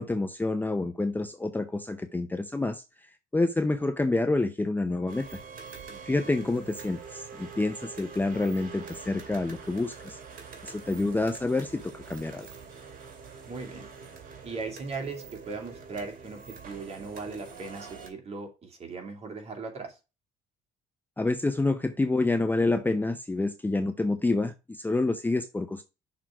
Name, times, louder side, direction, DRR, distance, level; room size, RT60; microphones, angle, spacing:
voice 1, 0.0-2.8 3.3-5.4 6.1-10.2 10.6-12.5 21.2-25.8, left 2 dB, 10° left, 0.6 m, -28 dB
sound 1, 5.1-18.1, right 5 dB, 55° right, 2.2 m, -45 dB
voice 2, 5.9-6.3 13.5-13.9 14.4-20.0, right 4 dB, 40° right, 2.5 m, -38 dB
6.2 x 3.7 x 5.8 m
cardioid pair, 110°, 17 cm